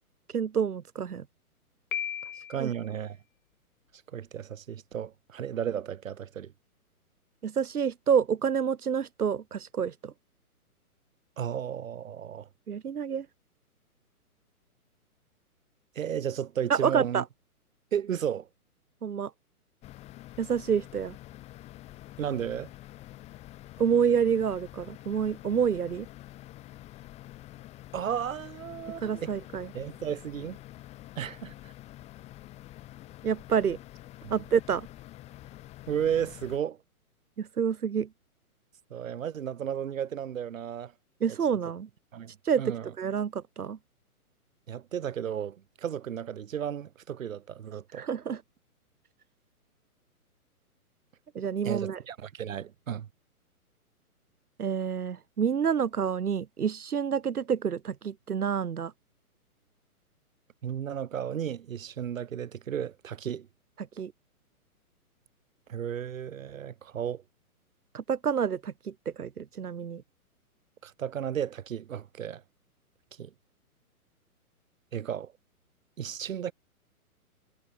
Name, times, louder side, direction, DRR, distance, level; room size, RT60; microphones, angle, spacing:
voice 1, 0.3-1.2 2.6-2.7 7.4-10.1 12.7-13.3 16.7-17.2 19.0-19.3 20.4-21.2 23.8-26.1 29.0-29.7 33.2-33.8 34.3-34.9 37.4-38.1 41.2-41.9 42.4-43.8 47.9-48.4 51.3-52.0 54.6-58.9 63.8-64.1 67.9-70.0, right 7 dB, 75° right, 2.9 m, -28 dB
Piano, 1.9-2.9, left 9 dB, 60° left, 1.6 m, -35 dB
voice 2, 2.5-3.2 4.1-6.5 11.4-12.5 15.9-17.2 17.9-18.5 22.2-22.7 27.9-29.3 29.7-30.6 31.2-31.7 34.2-34.4 35.9-36.8 38.9-40.9 42.1-42.3 42.6-42.8 44.7-48.1 51.6-53.1 60.6-63.5 65.7-67.2 70.8-72.4 73.2-73.3 74.9-75.3 76.0-76.5, right 9 dB, 60° right, 3.2 m, -34 dB
sound 1, 19.8-36.6, left 15 dB, 15° left, 1.7 m, -47 dB
hypercardioid pair, 155°, 45 cm